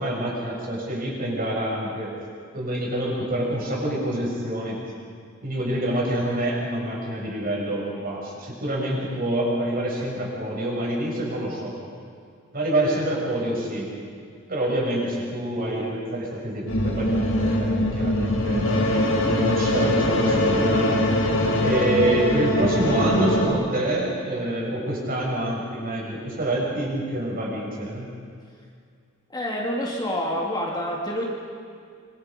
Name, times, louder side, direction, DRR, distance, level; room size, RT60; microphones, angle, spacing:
voice 1, 0.0-2.1 2.5-4.8 5.4-11.7 12.5-13.9 14.5-20.9 21.6-28.1, right 1 dB, 45° right, -4 dB, 7.9 m, -27 dB
sound 1, 16.7-23.5, left 1 dB, 70° left, 4.8 m, -22 dB
voice 2, 29.3-31.3, equal, 20° left, -3 dB, 3.0 m, -27 dB
27.0 x 26.0 x 5.4 m, 2.2 s
head